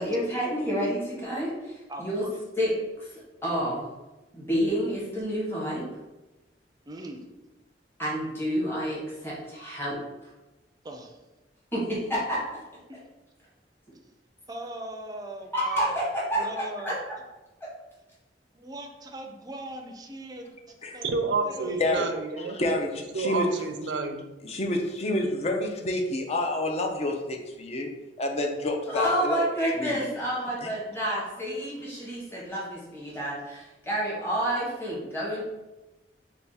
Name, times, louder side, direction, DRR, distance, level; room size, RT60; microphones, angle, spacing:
voice 1, 0.0-2.2 2.6-3.9 4.3-5.9 8.0-10.3 11.7-12.6 15.5-16.9 17.6-17.7 28.9-35.4, equal, 15° left, -7 dB, 1.3 m, -29 dB
voice 2, 1.9-2.4 6.9-7.3 10.8-11.2 14.5-15.9 16.4-17.0 18.5-20.6 20.9-21.1 21.4-21.8 22.4-22.6, right 1 dB, 20° right, 3 dB, 0.4 m, -40 dB
voice 3, 21.0-22.6 23.1-24.2, right 4 dB, 80° right, 6 dB, 0.4 m, -29 dB
voice 4, 22.5-23.5 24.4-27.9 28.2-29.4 29.8-30.0 30.6-30.7, left 1 dB, 35° left, 3 dB, 0.5 m, -28 dB
3.4 x 2.3 x 4.1 m, 1.1 s
head